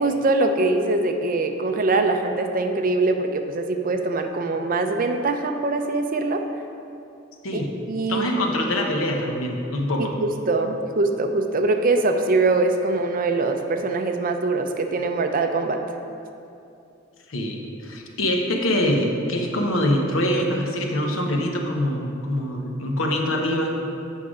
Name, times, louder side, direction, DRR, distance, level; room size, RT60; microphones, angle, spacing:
voice 1, 0.0-6.4 7.5-7.6 7.9-8.3 10.0-15.8, right 3 dB, 45° right, 5 dB, 0.6 m, -23 dB
voice 2, 8.1-10.1 17.3-23.7, left 1 dB, 85° left, 1 dB, 1.0 m, -24 dB
8.2 x 5.7 x 4.9 m, 2.7 s
head